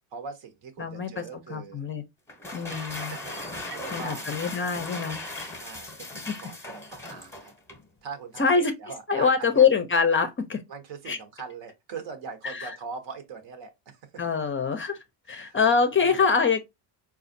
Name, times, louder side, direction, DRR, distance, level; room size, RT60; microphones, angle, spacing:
voice 1, 0.1-1.8 2.9-4.3 5.6-7.5 8.0-9.7 10.7-14.2 15.3-16.3, right 5 dB, 65° right, 1.0 m, -41 dB
voice 2, 0.8-1.2 1.5-2.0 2.5-3.2 3.9-5.2 6.3-6.4 8.4-8.7 9.1-10.6 11.1-11.2 12.4-12.7 14.2-16.6, left 5 dB, 25° left, 0.5 m, -24 dB
sound 1, 2.3-7.9, left 2 dB, 5° left, 0.8 m, -38 dB
4.1 x 2.4 x 2.5 m
cardioid pair, 95°, 48 cm